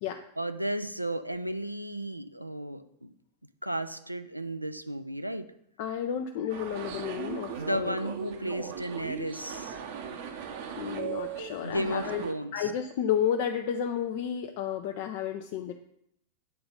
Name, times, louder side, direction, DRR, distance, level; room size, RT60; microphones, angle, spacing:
voice 1, 0.4-3.1 3.6-5.5 7.6-9.8 11.6-12.7, right 1 dB, 90° right, 10 dB, 0.4 m, -34 dB
voice 2, 5.8-8.1 10.8-12.2 12.5-15.7, left 9 dB, 50° left, 5 dB, 0.5 m, -31 dB
sound 1, 6.5-12.3, right 7 dB, 55° right, 0.9 m, -38 dB
8.8 x 3.9 x 5.3 m, 0.75 s
figure-of-eight pair, 90°, 0 cm